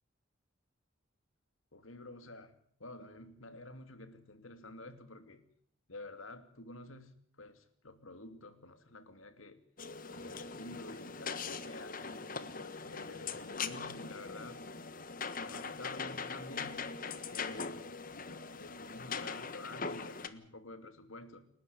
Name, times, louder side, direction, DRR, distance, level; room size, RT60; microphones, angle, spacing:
voice 1, 1.7-5.4 5.9-9.6 10.1-12.3 12.8-14.7 15.3-16.9 17.3-17.9 18.5-21.5, left 2 dB, 85° left, 9 dB, 2.8 m, -50 dB
sound 1, 9.8-20.3, left 5 dB, 45° left, 1.4 m, -41 dB
29.0 x 12.0 x 9.5 m, 0.62 s
head